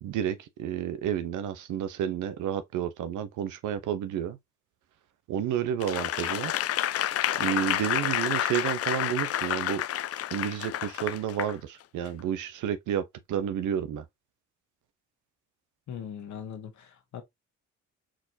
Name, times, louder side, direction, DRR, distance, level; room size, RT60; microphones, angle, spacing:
voice 1, 0.0-4.4 5.3-6.5 7.4-9.8 10.3-14.0, right 9 dB, 80° right, 0.9 m, -31 dB
Applause / Crowd, 5.8-11.5 12.1-12.2, left 12 dB, 50° left, 0.4 m, -29 dB
voice 2, 15.9-17.2, left 8 dB, 70° left, 1.5 m, -40 dB
4.7 x 4.1 x 2.8 m
cardioid pair, 90°, 30 cm